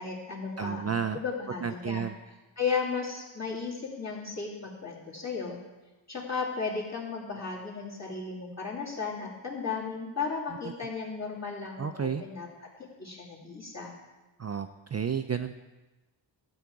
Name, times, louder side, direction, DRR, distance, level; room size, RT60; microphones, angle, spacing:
voice 1, 0.0-2.0 2.6-5.6 6.1-12.7 13.0-13.9, left 5 dB, 35° left, -3 dB, 2.9 m, -35 dB
voice 2, 0.6-1.2 1.6-2.1 11.8-12.2 14.4-15.6, right 7 dB, 35° right, 8 dB, 0.4 m, -31 dB
13.0 x 8.8 x 4.7 m, 1.1 s
wide cardioid pair, 115°, 47 cm